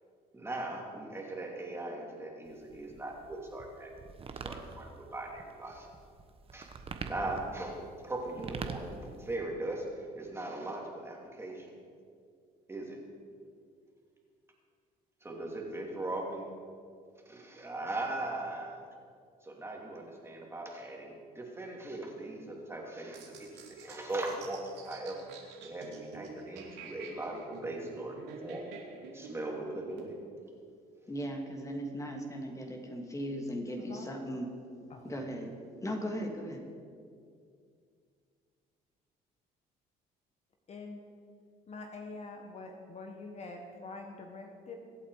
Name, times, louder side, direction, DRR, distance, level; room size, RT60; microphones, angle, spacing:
voice 1, 0.3-3.9 4.4-5.9 6.5-6.7 7.0-11.7 12.7-13.0 15.2-16.4 17.3-18.8 19.4-23.5 23.8-25.3 25.6-25.9 26.1-28.6 29.1-30.2, right 2 dB, 15° right, -1 dB, 2.8 m, -39 dB
sound 1, 2.4-9.4, right 5 dB, 35° right, 1.2 m, -44 dB
sound 2, 23.1-30.1, right 4 dB, 90° right, 2.6 m, -48 dB
voice 2, 31.1-34.5 35.0-35.5 35.8-36.6, equal, 20° left, 1 dB, 2.4 m, -37 dB
voice 3, 33.8-34.3 34.9-35.0 40.7-41.0 41.7-44.8, left 3 dB, 40° left, 3 dB, 1.5 m, -45 dB
24.0 x 8.3 x 4.9 m, 2.2 s
cardioid pair, 110°, 17 cm